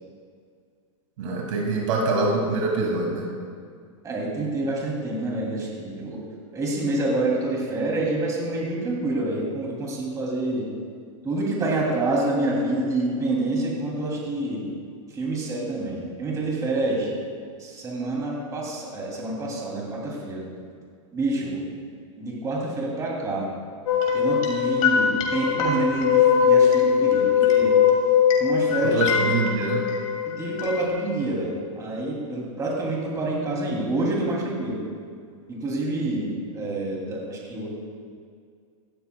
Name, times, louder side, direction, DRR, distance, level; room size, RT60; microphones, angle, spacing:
voice 1, 1.2-3.3 28.8-29.8, right 3 dB, 65° right, -1 dB, 2.3 m, -25 dB
voice 2, 4.0-6.2 6.5-10.7 11.2-14.7 15.1-17.1 17.6-20.4 21.1-21.6 22.2-23.5 24.1-27.7 28.4-29.3 30.3-34.8 35.5-36.3 36.5-37.7, right 2 dB, 20° right, -3 dB, 2.8 m, -27 dB
sound 1, 23.9-30.9, left 8 dB, 75° left, 2.5 m, -21 dB
17.0 x 13.5 x 2.3 m, 2.2 s
supercardioid pair, 140°, 18 cm